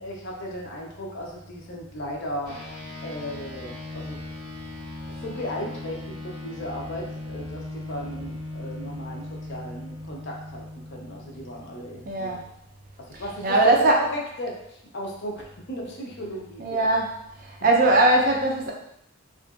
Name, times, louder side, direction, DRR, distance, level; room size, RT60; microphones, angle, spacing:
voice 1, 0.0-2.6 3.0-4.2 5.2-10.6 10.9-12.4 13.0-16.9, equal, 50° left, -1 dB, 0.5 m, -36 dB
sound 1, 2.4-12.2, left 1 dB, 20° right, 1.4 m, -38 dB
voice 2, 12.1-12.4 13.4-14.0 16.6-17.1 17.6-18.7, right 2 dB, 40° right, 0 dB, 0.4 m, -20 dB
2.7 x 2.5 x 2.3 m, 0.75 s
head